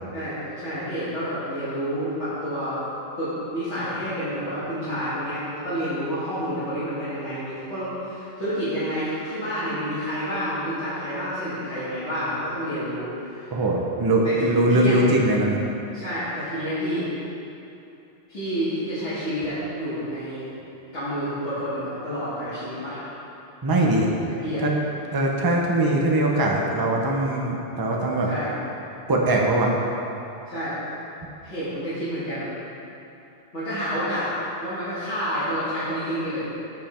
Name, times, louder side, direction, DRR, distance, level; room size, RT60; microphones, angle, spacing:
voice 1, 0.1-2.8 3.2-13.5 14.2-14.4 14.7-15.0 15.9-17.1 18.3-20.5 20.9-23.0 24.3-24.6 28.2-28.5 30.5-30.8 31.4-32.5 33.5-34.3 34.6-36.5, equal, 75° left, -15 dB, 2.2 m, -29 dB
voice 2, 13.5-15.6 23.6-24.1 24.6-24.7 25.1-28.3 29.1-29.7, right 1 dB, 25° right, -1 dB, 0.6 m, -21 dB
7.3 x 5.8 x 4.3 m, 2.8 s
omnidirectional pair, 1.2 m